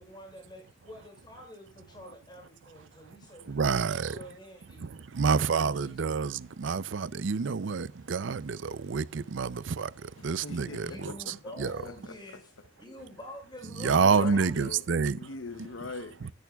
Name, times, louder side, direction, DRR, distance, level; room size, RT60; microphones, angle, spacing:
voice 1, 0.0-5.0 5.3-6.1 10.6-12.5 12.8-14.8, left 1 dB, 25° left, 5.7 m, -47 dB
voice 2, 3.5-4.2 4.8-11.8 13.8-15.2, right 5 dB, 70° right, 0.5 m, -28 dB
voice 3, 10.2-11.3 11.6-12.4 13.9-14.9 15.2-16.3, left 3 dB, 80° left, 0.8 m, -42 dB
16.0 x 10.5 x 2.3 m
head